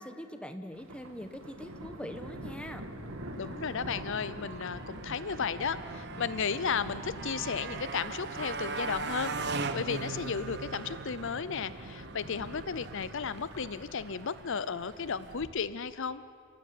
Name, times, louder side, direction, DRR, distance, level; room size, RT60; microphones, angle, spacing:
voice 1, 0.0-2.9, equal, 5° left, 7 dB, 1.2 m, -42 dB
Thunder, 0.7-15.5, right 1 dB, 70° right, 2.2 m, -44 dB
Motorcycle, 3.3-15.5, right 4 dB, 50° right, 1.1 m, -41 dB
voice 2, 3.4-16.2, left 6 dB, 60° left, 15 dB, 0.6 m, -34 dB
sound 1, 3.4-6.2 7.1-8.1 8.7-12.7, right 4 dB, 35° right, 2.9 m, -61 dB
28.5 x 15.5 x 9.5 m, 2.4 s
head